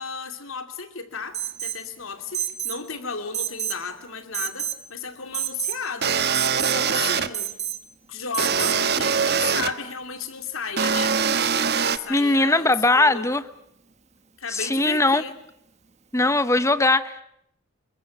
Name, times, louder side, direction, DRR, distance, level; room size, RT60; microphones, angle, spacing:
voice 1, 0.0-7.5 8.1-11.2 11.8-13.3 14.4-15.3, left 5 dB, 70° left, 8 dB, 2.8 m, -34 dB
Alarm, 1.3-1.8 2.3-2.8 3.3-3.8 4.3-4.8 5.3-5.8 6.3-6.8 7.3-7.8 8.3-8.8, right 11 dB, 30° right, 1.4 m, -29 dB
sound 1, 6.0-7.3 8.4-9.7 10.8-12.0, right 6 dB, 50° right, 1.2 m, -22 dB
voice 2, 12.1-13.4 14.5-15.2 16.1-17.2, left 2 dB, 15° left, 14 dB, 0.9 m, -20 dB
28.5 x 21.5 x 7.4 m, 0.73 s
head